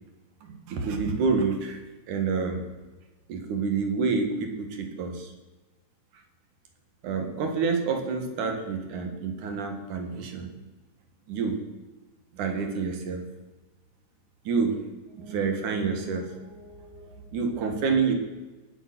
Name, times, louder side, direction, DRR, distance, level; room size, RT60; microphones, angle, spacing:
voice 1, 0.4-1.8 2.1-2.6 3.3-5.3 7.0-10.5 11.3-11.6 12.3-13.2 14.4-14.8 15.1-18.1, right 5 dB, 75° right, 4 dB, 3.2 m, -28 dB
19.0 x 7.9 x 6.0 m, 1.2 s
omnidirectional pair, 3.5 m